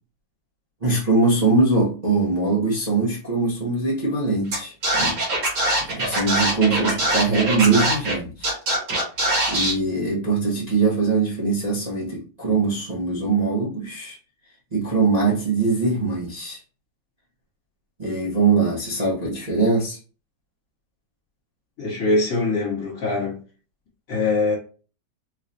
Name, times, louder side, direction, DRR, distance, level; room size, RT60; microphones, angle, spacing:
voice 1, 0.8-5.2 5.9-8.5 9.5-14.2 14.7-16.6 18.0-20.0, right 3 dB, 30° right, 0.7 m, -22 dB
Scratching (performance technique), 4.5-4.6 4.8-8.1 8.4-9.7, right 1 dB, 60° right, 2.1 m, -22 dB
voice 2, 21.8-23.4 24.1-24.5, left 3 dB, 60° left, 1.8 m, -22 dB
4.7 x 2.3 x 2.6 m
omnidirectional pair, 2.3 m